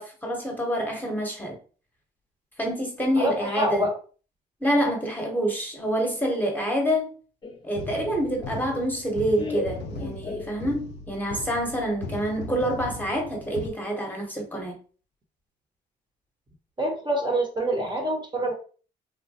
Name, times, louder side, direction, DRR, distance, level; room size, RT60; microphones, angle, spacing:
voice 1, 0.0-1.6 2.6-3.9 4.6-7.1 7.6-14.8, equal, 10° left, 1.1 m, -27 dB
voice 2, 3.2-3.9 16.8-18.5, right 1 dB, 25° right, 1.0 m, -26 dB
Laughter, 7.4-11.1, left 4 dB, 25° left, 0.8 m, -37 dB
sound 1, 7.8-13.7, left 3 dB, 80° left, 0.5 m, -38 dB
3.2 x 2.1 x 2.8 m
supercardioid pair, 75°, 18 cm